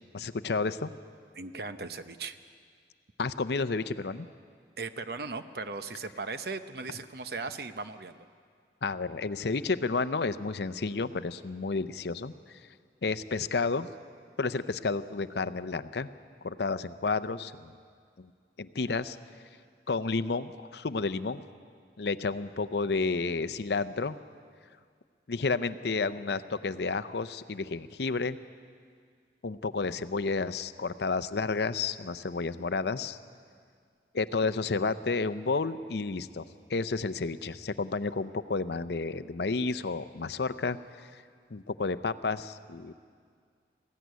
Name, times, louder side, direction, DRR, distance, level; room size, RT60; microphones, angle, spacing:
voice 1, 0.1-0.9 3.2-4.3 8.8-12.6 13.0-13.9 14.4-16.1 16.4-17.7 18.2-18.3 18.6-19.2 19.9-21.4 22.0-24.2 25.3-28.4 29.4-33.2 34.1-41.2 41.5-42.9, left 4 dB, 65° left, 13 dB, 0.6 m, -31 dB
voice 2, 1.3-2.4 4.8-8.3, right 4 dB, 60° right, 10 dB, 0.8 m, -38 dB
20.0 x 15.0 x 9.4 m, 2.1 s
head